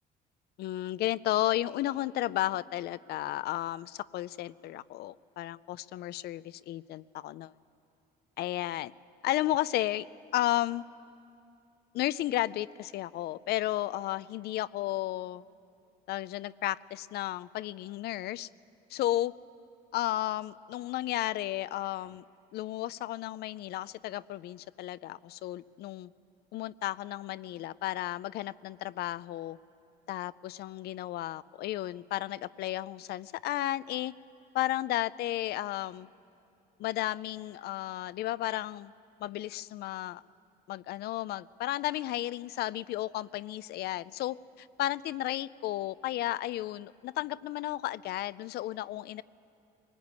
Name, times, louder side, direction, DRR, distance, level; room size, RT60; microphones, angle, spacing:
voice 1, 0.6-7.5 8.4-8.9 9.2-10.1 10.3-10.8 11.9-15.4 16.1-18.5 18.9-19.3 19.9-22.2 22.5-26.1 26.5-29.6 30.1-34.1 34.5-36.1 36.8-38.9 39.2-40.2 40.7-49.2, left 15 dB, 75° left, 17 dB, 0.5 m, -33 dB
22.0 x 20.0 x 9.6 m, 2.5 s
cardioid pair, 110°, 17 cm